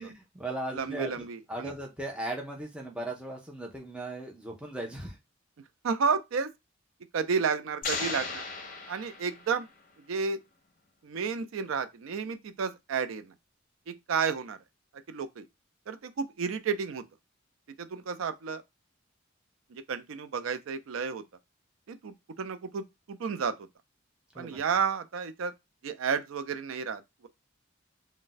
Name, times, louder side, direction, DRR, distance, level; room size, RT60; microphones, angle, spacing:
voice 1, 0.0-1.1 1.5-5.2 24.3-24.6, right 1 dB, 5° right, 0.5 m, -37 dB
voice 2, 0.7-1.7 5.8-6.5 7.1-8.4 8.9-9.7 10.1-10.4 11.0-13.3 13.9-14.6 15.1-15.5 15.9-17.0 17.8-18.6 19.7-21.2 21.9-23.5 24.4-25.5 25.8-27.3, right 6 dB, 90° right, 0.4 m, -31 dB
sound 1, 7.8-9.7, left 4 dB, 45° left, 0.6 m, -36 dB
2.5 x 2.1 x 3.8 m
head